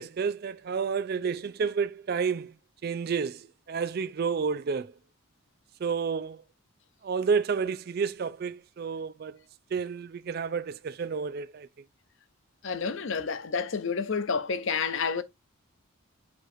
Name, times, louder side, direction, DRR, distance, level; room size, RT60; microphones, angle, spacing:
voice 1, 0.0-2.5 2.8-4.9 5.8-6.4 7.0-9.4 9.7-11.7, right 5 dB, 45° right, 0.3 m, -30 dB
voice 2, 12.6-15.2, left 5 dB, 60° left, 0.6 m, -29 dB
6.5 x 3.0 x 2.5 m
head